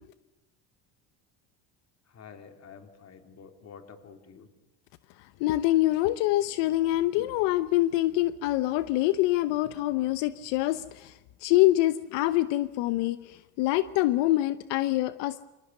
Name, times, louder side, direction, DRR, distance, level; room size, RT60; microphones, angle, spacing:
voice 1, 2.1-4.5, left 6 dB, 35° left, 6 dB, 3.4 m, -49 dB
voice 2, 5.4-11.1 11.4-15.4, left 16 dB, 85° left, 13 dB, 1.1 m, -25 dB
29.5 x 26.5 x 6.8 m, 1.0 s
cardioid pair, 130°, 42 cm